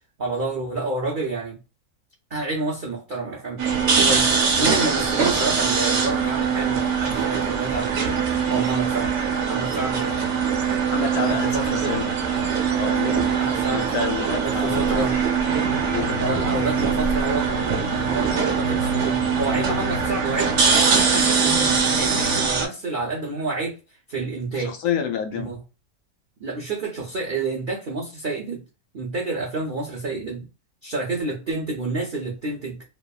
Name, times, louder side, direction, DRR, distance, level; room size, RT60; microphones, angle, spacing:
voice 1, 0.2-1.6 2.3-3.6 4.0-4.3 4.6-8.2 8.5-10.5 11.3-12.0 13.4-13.9 14.4-15.2 16.2-20.6 20.8-23.7 24.1-24.8 25.3-25.6 26.4-28.6 28.9-30.5 30.8-32.8, right 3 dB, 80° right, 0.4 m, -29 dB
sound 1, 3.6-22.7, right 6 dB, 60° right, 0.8 m, -22 dB
voice 2, 10.9-12.2 12.8-13.4 13.7-15.2 15.9-16.2 24.6-25.5, left 7 dB, 90° left, 1.2 m, -29 dB
sound 2, 15.5-22.5, left 6 dB, 70° left, 0.7 m, -33 dB
3.0 x 2.1 x 2.3 m
omnidirectional pair, 1.6 m